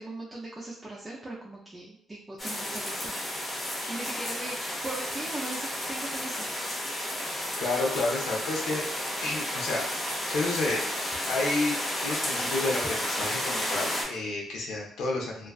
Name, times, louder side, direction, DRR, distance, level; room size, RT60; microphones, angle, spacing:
voice 1, 0.0-3.1 3.7-4.6 4.8-6.5, right 2 dB, 20° right, -5 dB, 0.4 m, -39 dB
sound 1, 2.4-14.0, left 1 dB, 30° left, 0.7 m, -32 dB
voice 2, 7.3-8.8 9.2-10.8 11.3-11.7 12.0-15.5, left 2 dB, 85° left, -2 dB, 0.6 m, -30 dB
2.3 x 2.3 x 2.3 m, 0.70 s
cardioid pair, 90°, 0 cm